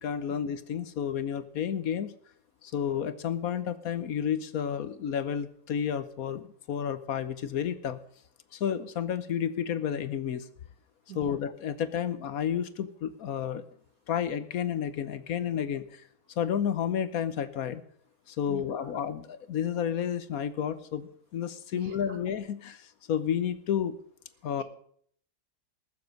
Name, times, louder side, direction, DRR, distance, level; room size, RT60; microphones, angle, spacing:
voice 1, 0.0-2.1 2.6-8.0 8.5-10.5 11.1-13.6 14.1-16.0 16.4-17.8 18.3-24.0 24.4-24.6, left 8 dB, 70° left, 13 dB, 1.2 m, -31 dB
voice 2, 18.5-18.9 21.7-22.2 24.6-24.7, right 9 dB, 65° right, 8 dB, 2.0 m, -46 dB
19.5 x 7.3 x 6.4 m, 0.62 s
omnidirectional pair, 1.7 m